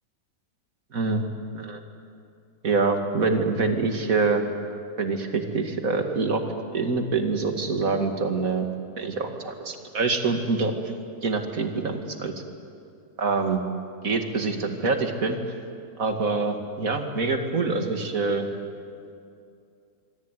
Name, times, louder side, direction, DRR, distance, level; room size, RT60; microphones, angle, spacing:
voice 1, 0.9-1.3 1.5-1.8 2.6-4.5 5.0-6.4 6.7-8.7 9.0-10.7 11.2-12.3 13.2-13.6 14.0-15.4 16.0-18.5, right 4 dB, 60° right, 5 dB, 2.6 m, -25 dB
26.0 x 24.0 x 9.3 m, 2.4 s
omnidirectional pair, 1.6 m